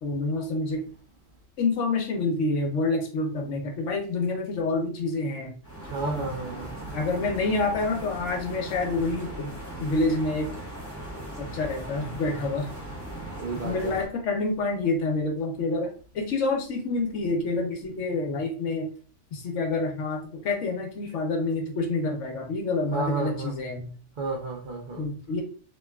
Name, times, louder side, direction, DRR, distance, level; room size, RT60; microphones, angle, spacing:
voice 1, 0.0-0.8 1.6-5.5 6.0-6.3 6.9-9.5 9.8-10.5 11.4-12.7 13.6-18.9 19.3-23.9 25.0-25.4, left 3 dB, 80° left, 1.1 m, -27 dB
sound 1, 5.6-14.1, right 1 dB, 15° left, 0.8 m, -38 dB
voice 2, 5.9-7.0 13.4-14.0 22.9-23.5 24.2-25.0, right 3 dB, 55° right, 0.6 m, -32 dB
2.9 x 2.3 x 2.2 m
omnidirectional pair, 1.2 m